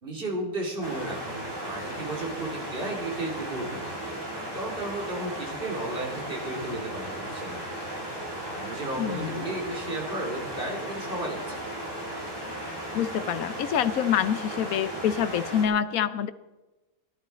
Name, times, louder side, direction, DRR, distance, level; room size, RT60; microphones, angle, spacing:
voice 1, 0.0-4.0 4.3-7.9 8.5-11.6, right 2 dB, 35° right, 1 dB, 2.9 m, -34 dB
sound 1, 0.8-15.7, right 1 dB, 15° right, 3.3 m, -36 dB
voice 2, 9.0-9.4 12.9-16.3, left 9 dB, 70° left, 13 dB, 1.1 m, -26 dB
17.0 x 11.5 x 4.1 m, 1.1 s
omnidirectional pair, 1.6 m